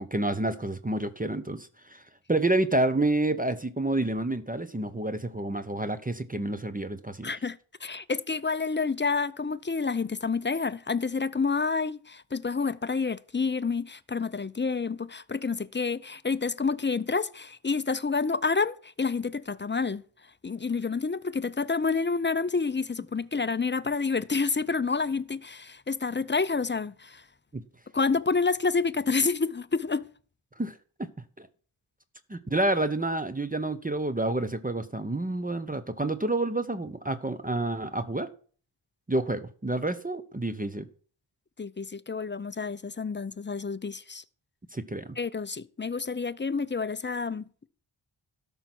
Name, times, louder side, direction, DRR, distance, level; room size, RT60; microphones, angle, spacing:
voice 1, 0.0-2.0 2.3-7.3 27.5-27.6 30.6-31.1 31.4-31.5 32.3-38.3 39.1-40.9 44.7-45.2, right 2 dB, 15° right, 0.9 m, -29 dB
voice 2, 7.2-20.0 20.4-27.2 27.9-30.1 41.6-44.2 45.2-47.7, left 4 dB, 25° left, 0.6 m, -29 dB
12.5 x 5.5 x 6.1 m
cardioid pair, 40°, 50 cm